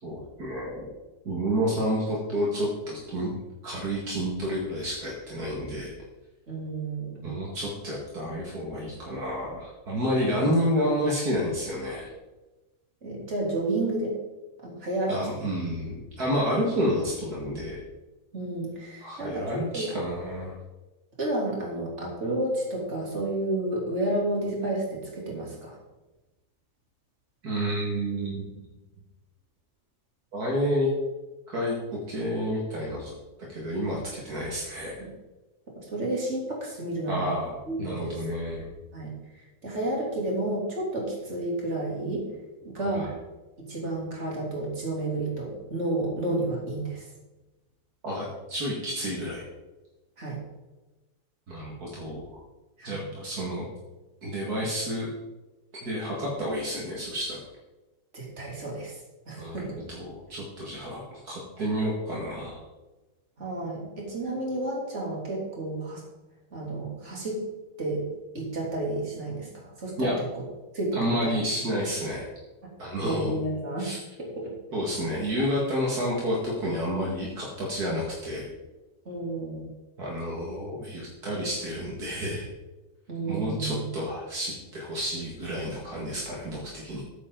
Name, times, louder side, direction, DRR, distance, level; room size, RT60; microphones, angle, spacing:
voice 1, 0.0-0.9 1.2-3.3 3.6-5.9 7.2-12.1 15.1-17.8 19.0-20.5 27.4-28.4 30.3-30.9 31.5-33.1 33.5-35.0 37.1-38.7 42.8-43.1 48.0-49.5 51.5-52.3 52.8-53.6 54.2-55.1 55.8-57.4 59.4-59.6 59.9-62.6 70.0-70.2 70.9-72.3 72.8-73.4 73.8-74.0 74.7-78.5 80.0-82.5 83.3-87.0, equal, 65° right, -4 dB, 2.6 m, -30 dB
voice 2, 6.5-7.4 13.0-14.1 14.6-15.2 18.3-19.9 21.2-25.8 35.0-35.1 35.9-37.4 37.7-38.1 38.9-39.1 39.6-42.3 42.6-43.1 43.6-47.1 50.2-50.4 52.8-53.0 58.1-59.0 59.3-59.8 63.4-66.0 66.5-67.4 67.8-68.1 68.3-70.4 70.7-71.4 73.0-73.9 74.2-74.5 79.1-79.7 83.1-83.8, right 2 dB, 40° right, -3 dB, 3.6 m, -31 dB
13.5 x 9.3 x 3.9 m, 1.1 s
omnidirectional pair, 1.8 m